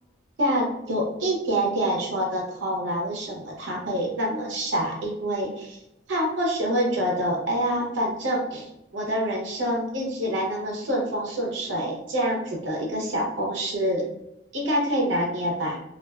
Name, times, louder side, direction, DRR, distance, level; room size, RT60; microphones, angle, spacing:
voice 1, 0.4-5.8 6.1-14.1 14.5-15.8, equal, 90° right, -1 dB, 0.8 m, -26 dB
2.4 x 2.3 x 2.3 m, 0.87 s
head